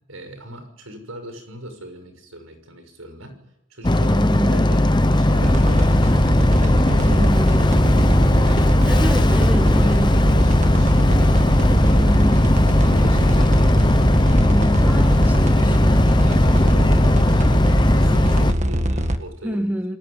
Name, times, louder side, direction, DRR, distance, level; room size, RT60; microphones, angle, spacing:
voice 1, 0.1-3.4 3.7-7.3 7.7-8.9 9.3-11.5 11.9-12.2 12.6-14.7 15.0-19.7, right 1 dB, 85° right, 8 dB, 6.2 m, -39 dB
Boat Water vehicle, 3.8-18.5, left 1 dB, 20° left, 0.9 m, -17 dB
voice 2, 4.0-4.6 7.1-7.7 8.8-10.2 11.8-12.5 14.4-16.3 19.4-20.0, equal, 10° right, 5 dB, 1.7 m, -27 dB
sound 1, 5.4-19.2, equal, 35° right, 1.7 m, -22 dB
28.0 x 19.5 x 9.8 m, 0.85 s
head